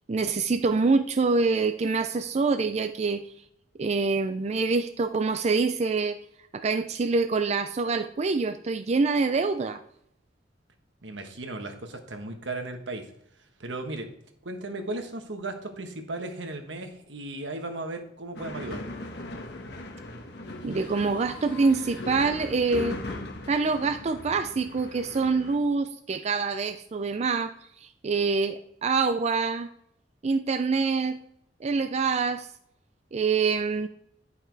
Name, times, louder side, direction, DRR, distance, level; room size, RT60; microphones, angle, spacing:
voice 1, 0.1-3.2 3.8-6.2 6.5-9.8 20.6-23.0 23.5-29.7 30.2-31.2 31.6-32.5 33.1-33.9, right 4 dB, 35° right, 0.4 m, -25 dB
voice 2, 11.0-13.1 13.6-14.1 14.4-18.9, right 2 dB, 80° right, 1.4 m, -36 dB
sound 1, 18.3-25.6, left 2 dB, 65° left, 1.3 m, -39 dB
10.5 x 5.7 x 4.6 m
head